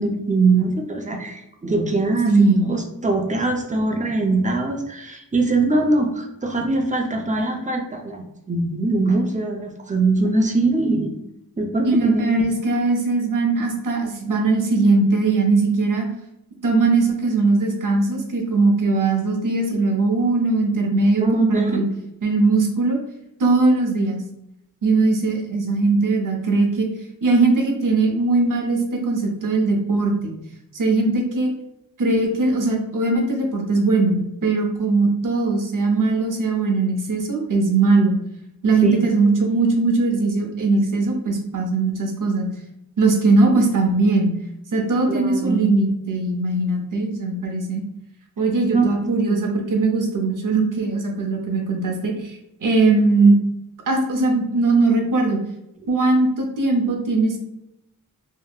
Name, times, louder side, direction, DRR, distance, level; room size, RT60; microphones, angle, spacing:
voice 1, 0.0-11.1 11.6-12.4 21.2-21.8 38.8-39.0 45.1-45.7 48.7-49.4, right 2 dB, 20° right, 3 dB, 0.5 m, -22 dB
voice 2, 2.3-2.7 11.8-16.1 16.6-21.9 22.2-23.0 23.4-24.2 24.8-26.9 27.2-30.3 30.7-31.5 32.0-38.2 38.6-42.5 43.0-44.3 44.7-47.8 48.4-53.4 53.9-55.4 55.9-57.4, right 3 dB, 60° right, 2 dB, 0.7 m, -20 dB
3.5 x 2.2 x 2.3 m, 0.84 s
cardioid pair, 50°, 36 cm